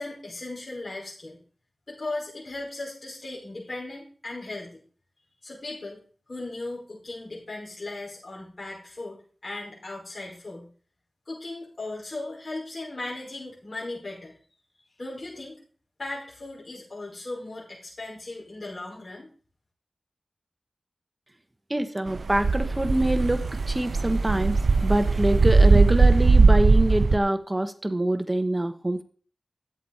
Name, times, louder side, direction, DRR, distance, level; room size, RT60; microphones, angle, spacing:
voice 1, 0.0-1.4 1.9-4.8 5.4-6.0 6.3-10.7 11.3-14.3 15.0-15.6 16.0-19.3, left 2 dB, 60° left, -4 dB, 5.5 m, -37 dB
voice 2, 21.7-29.0, right 1 dB, 20° right, 8 dB, 1.2 m, -25 dB
sound 1, 22.1-27.2, right 3 dB, 80° right, 0.5 m, -19 dB
12.5 x 8.2 x 4.3 m, 0.42 s
wide cardioid pair, 55°, 0 cm